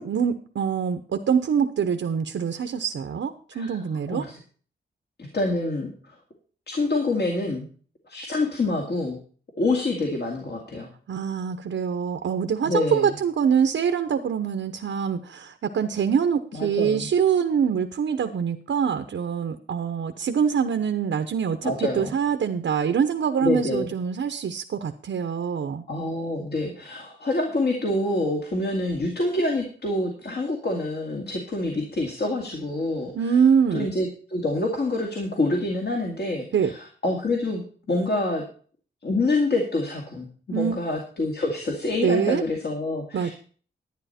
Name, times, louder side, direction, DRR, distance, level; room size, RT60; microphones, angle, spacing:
voice 1, 0.0-4.2 11.1-25.8 33.1-33.9 36.5-36.7 40.5-40.8 42.0-42.4 43.1-43.3, right 7 dB, 80° right, 7 dB, 0.9 m, -24 dB
voice 2, 5.2-6.1 6.7-7.7 8.1-9.2 9.6-10.9 12.6-13.1 16.5-17.1 21.6-22.1 23.4-23.9 25.9-33.1 33.7-38.4 39.0-43.3, left 2 dB, 55° left, 1 dB, 2.2 m, -26 dB
11.5 x 9.8 x 4.3 m, 0.43 s
wide cardioid pair, 130°, 20 cm